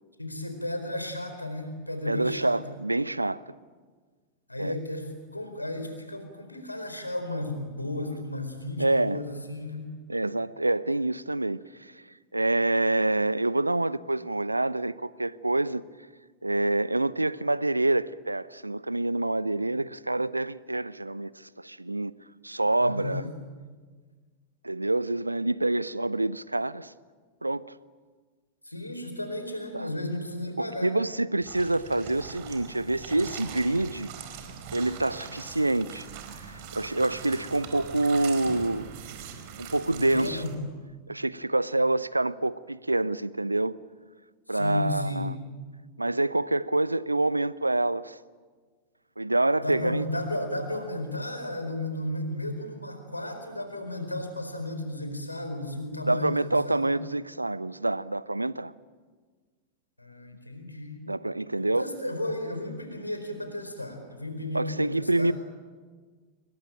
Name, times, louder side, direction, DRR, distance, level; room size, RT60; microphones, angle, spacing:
voice 1, 0.2-2.6 4.5-9.9 22.8-23.3 28.6-30.9 35.3-35.4 40.0-40.6 44.5-45.3 49.6-56.9 60.0-61.0 61.6-65.3, left 1 dB, 85° left, 4.6 m, -34 dB
voice 2, 2.1-3.4 4.6-4.7 8.8-9.2 10.1-11.9 12.3-15.8 16.4-22.1 22.4-23.3 24.6-26.9 27.4-27.8 29.7-29.9 30.6-34.1 34.7-36.0 36.4-38.9 39.6-40.4 41.1-43.8 44.5-45.3 46.0-48.2 49.2-50.1 56.1-58.7 61.1-61.9 64.5-65.3, right 2 dB, 85° right, 0.7 m, -27 dB
sound 1, 31.4-40.6, right 7 dB, 50° right, 4.7 m, -42 dB
27.0 x 23.5 x 9.0 m
figure-of-eight pair, 90°, 0 cm